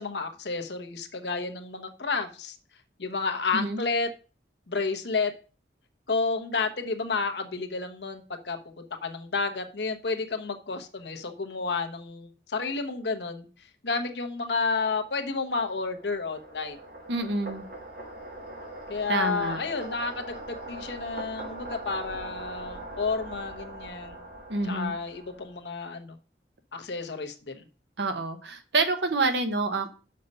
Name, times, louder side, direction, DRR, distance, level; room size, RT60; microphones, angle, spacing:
voice 1, 0.0-2.5 3.0-4.1 4.7-5.3 6.1-8.6 9.0-13.4 13.8-16.8 18.9-24.2 24.6-26.1 26.7-27.6, left 4 dB, 75° left, 6 dB, 1.0 m, -31 dB
sound 1, 15.1-25.7, right 1 dB, 60° right, 2.7 m, -41 dB
voice 2, 17.1-17.6 19.1-19.6 24.5-24.9 28.0-29.9, right 3 dB, 75° right, 7 dB, 1.1 m, -27 dB
6.6 x 5.3 x 5.4 m, 0.36 s
head